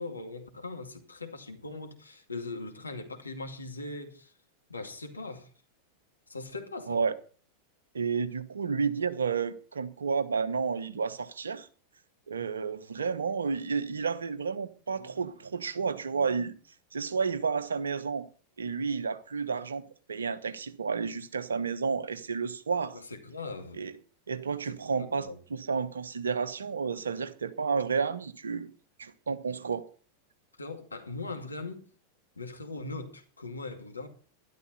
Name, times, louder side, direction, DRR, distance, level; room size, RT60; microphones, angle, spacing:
voice 1, 0.0-4.3 4.7-5.5 6.3-7.0 15.0-15.2 22.9-23.8 24.9-25.4 30.6-31.9 32.4-34.1, left 3 dB, 80° left, 2.3 m, -40 dB
voice 2, 7.9-11.7 12.3-16.5 16.9-18.3 18.6-19.8 20.1-23.0 23.7-23.9 24.3-28.7 29.0-29.8, right 5 dB, 70° right, 1.1 m, -31 dB
12.5 x 11.5 x 5.6 m
figure-of-eight pair, 90°, 0 cm